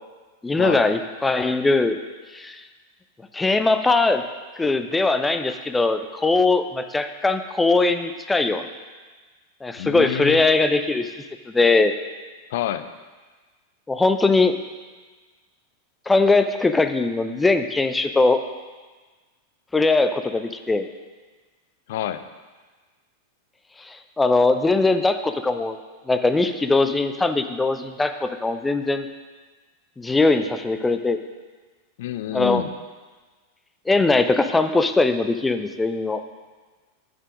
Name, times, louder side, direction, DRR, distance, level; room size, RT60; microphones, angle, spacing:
voice 1, 0.4-2.0 2.3-2.6 3.3-4.2 4.6-8.7 9.6-11.1 11.5-11.9 13.9-14.5 16.1-18.4 19.7-20.9 23.9-25.8 26.1-29.1 30.0-31.2 32.3-32.6 33.9-36.2, left 3 dB, 10° left, 8 dB, 0.5 m, -20 dB
voice 2, 9.8-10.4 12.5-12.9 21.9-22.2 32.0-32.7, left 12 dB, 55° left, 12 dB, 0.5 m, -28 dB
8.7 x 6.5 x 5.1 m, 1.3 s
figure-of-eight pair, 90°, 0 cm